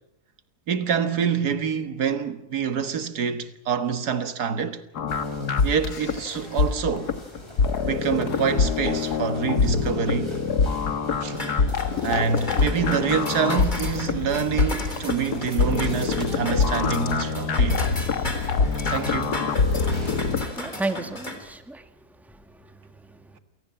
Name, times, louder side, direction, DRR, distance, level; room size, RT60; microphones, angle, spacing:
voice 1, 0.7-4.8 5.6-7.2 7.8-10.3 11.2-11.4 12.0-17.9 18.9-19.4, right 6 dB, 90° right, 2.0 m, -26 dB
sound 1, 4.9-20.4, left 5 dB, 90° left, 2.0 m, -25 dB
sound 2, 5.1-20.8, equal, 15° right, 6.3 m, -44 dB
sound 3, 11.4-21.4, left 1 dB, 30° left, 3.6 m, -36 dB
voice 2, 20.4-21.9 22.2-23.4, right 2 dB, ahead, 1.5 m, -34 dB
28.0 x 18.0 x 8.8 m
omnidirectional pair, 1.6 m